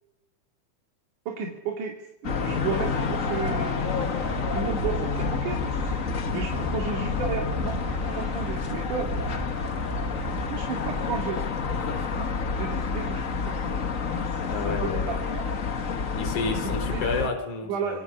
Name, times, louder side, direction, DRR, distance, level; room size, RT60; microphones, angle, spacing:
voice 1, 1.3-7.8 8.1-9.2 10.5-11.4 12.1-13.9 14.1-15.5 16.5-16.6 16.9-17.0 17.6-18.0, right 5 dB, 75° right, 1 dB, 4.0 m, -33 dB
sound 1, 2.2-17.3, left 5 dB, 50° left, 0.9 m, -29 dB
sound 2, 4.2-10.5, right 1 dB, 20° right, 2.3 m, -35 dB
voice 2, 11.7-12.1 14.5-15.2 16.1-18.0, left 4 dB, 70° left, 6 dB, 5.0 m, -31 dB
27.0 x 26.5 x 5.6 m, 0.87 s
omnidirectional pair, 3.6 m